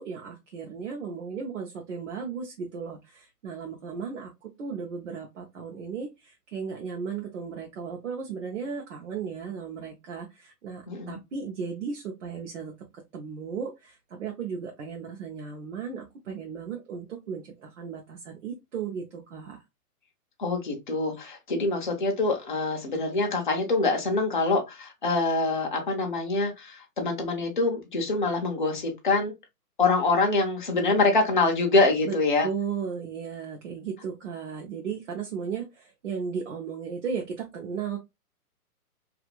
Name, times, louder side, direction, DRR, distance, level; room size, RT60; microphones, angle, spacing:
voice 1, 0.0-12.7 13.1-19.6 32.0-32.2 32.4-38.0, right 6 dB, 50° right, 0.6 m, -35 dB
voice 2, 10.9-11.2 20.4-29.3 29.8-32.5, left 3 dB, 35° left, 0.5 m, -25 dB
2.5 x 2.5 x 2.8 m
hypercardioid pair, 165°, 46 cm